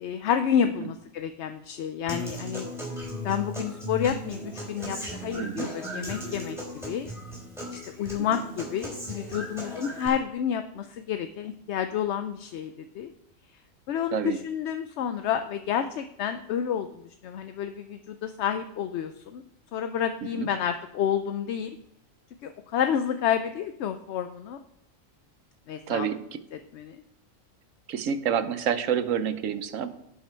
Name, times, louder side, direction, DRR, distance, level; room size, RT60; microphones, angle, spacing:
voice 1, 0.0-2.7 3.2-7.1 7.7-13.1 13.9-16.9 17.2-19.4 19.7-21.8 22.4-24.6 25.7-26.1 26.7-27.0, left 8 dB, 65° left, 8 dB, 0.8 m, -29 dB
Human voice / Acoustic guitar, 2.1-10.1, equal, ahead, 3.5 m, -37 dB
voice 2, 5.4-5.7 8.2-8.4 14.1-14.4 20.2-20.5 25.9-26.4 27.9-29.9, right 8 dB, 75° right, 11 dB, 1.2 m, -29 dB
16.5 x 5.8 x 4.4 m, 0.80 s
omnidirectional pair, 1.4 m